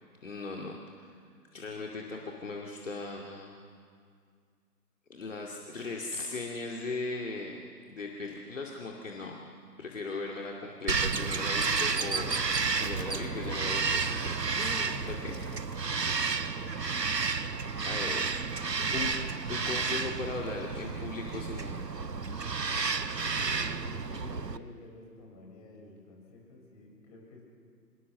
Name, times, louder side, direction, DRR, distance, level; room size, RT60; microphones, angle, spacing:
voice 1, 0.2-0.8 1.5-3.5 5.1-7.6 7.9-9.3 9.8-15.3 17.8-18.2 18.9-19.1 19.5-21.9, left 3 dB, 50° left, -1 dB, 2.5 m, -38 dB
Bird vocalization bird call bird song, 10.9-24.6, right 4 dB, 85° right, 1.1 m, -31 dB
voice 2, 15.9-16.8 18.6-19.1 23.3-27.4, left 2 dB, 25° left, -1 dB, 5.3 m, -50 dB
24.5 x 22.5 x 6.8 m, 2.1 s
figure-of-eight pair, 145°, 48 cm